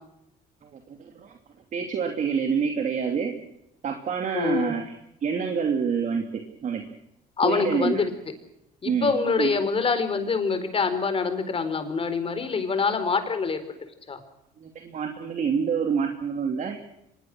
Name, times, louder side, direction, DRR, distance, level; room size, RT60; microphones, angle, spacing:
voice 1, 0.6-1.3 1.7-3.3 3.8-4.9 5.2-6.8 7.4-8.0 8.8-9.5 14.6-16.9, right 6 dB, 50° right, 4 dB, 2.9 m, -27 dB
voice 2, 4.3-4.7 7.4-8.1 8.8-13.6 14.1-14.2, left 5 dB, 35° left, 10 dB, 4.5 m, -25 dB
25.5 x 21.5 x 6.3 m, 0.83 s
cardioid pair, 110°, 17 cm